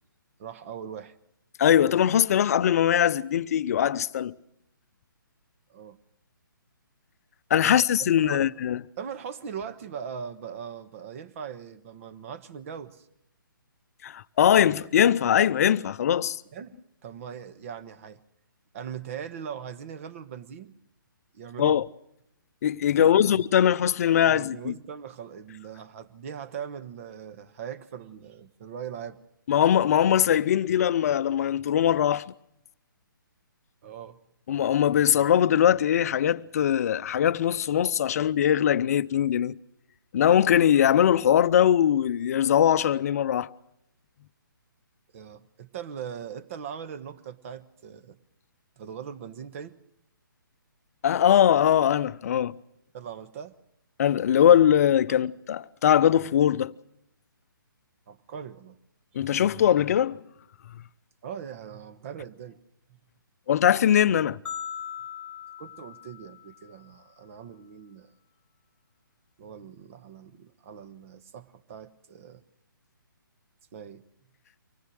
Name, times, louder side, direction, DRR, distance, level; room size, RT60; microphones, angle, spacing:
voice 1, 0.4-1.1 5.7-6.0 7.6-8.5 9.0-13.1 16.5-18.2 18.7-20.8 21.3-21.8 23.0-23.3 24.2-29.2 33.8-34.2 45.1-48.2 48.8-49.7 52.9-53.5 55.1-55.3 58.1-58.8 61.2-62.6 62.9-63.0 65.6-68.1 69.4-72.4 73.7-74.0, right 8 dB, 40° right, 1.4 m, -40 dB
voice 2, 1.6-4.3 7.5-8.8 14.0-16.4 21.6-21.8 22.6-24.7 29.5-32.3 34.5-39.6 40.1-43.5 51.0-52.6 54.0-56.7 59.1-60.2 63.5-64.4, left 10 dB, 45° left, 0.7 m, -21 dB
sound 1, 64.5-66.8, left 8 dB, 10° left, 0.9 m, -39 dB
25.0 x 19.0 x 6.4 m
figure-of-eight pair, 140°, 11 cm